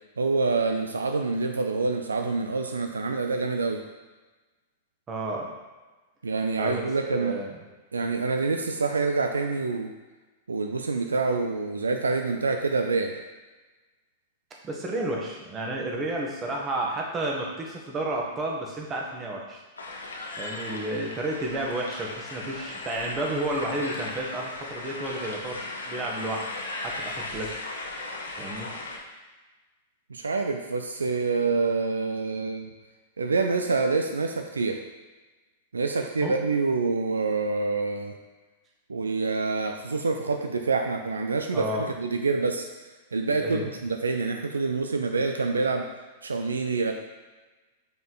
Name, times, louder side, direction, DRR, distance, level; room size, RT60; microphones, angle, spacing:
voice 1, 0.2-3.8 6.2-7.4 7.9-9.9 10.5-13.2 30.1-32.7 33.2-34.8 35.7-38.1 38.9-42.7 43.1-45.9 46.2-46.9, right 4 dB, 90° right, 4 dB, 0.5 m, -26 dB
voice 2, 5.1-5.5 6.6-7.5 14.6-19.6 20.4-26.5 26.8-27.5 28.4-28.7 36.2-36.3 41.5-41.9 43.4-43.7, right 1 dB, 25° right, -1 dB, 1.4 m, -31 dB
sound 1, 19.8-29.0, left 2 dB, 85° left, 1.0 m, -37 dB
5.3 x 4.5 x 4.0 m, 1.2 s
hypercardioid pair, 105°, 0 cm